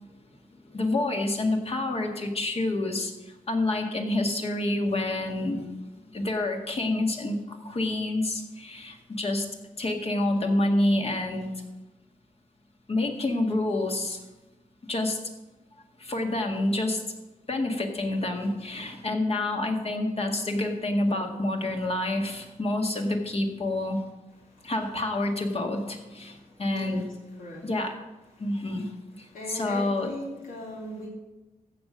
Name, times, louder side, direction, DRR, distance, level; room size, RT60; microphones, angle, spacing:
voice 1, 0.7-3.1 3.5-5.9 6.1-9.5 9.8-11.5 12.9-14.2 14.9-15.2 16.0-17.0 17.5-24.0 24.6-27.1 27.6-27.9 28.4-28.9 29.2-30.1, left 2 dB, 45° left, 3 dB, 1.9 m, -28 dB
voice 2, 26.2-27.0 27.4-27.7 29.3-31.1, left 1 dB, 80° left, -4 dB, 2.8 m, -39 dB
14.5 x 5.3 x 7.7 m, 1.1 s
wide cardioid pair, 105°, 14 cm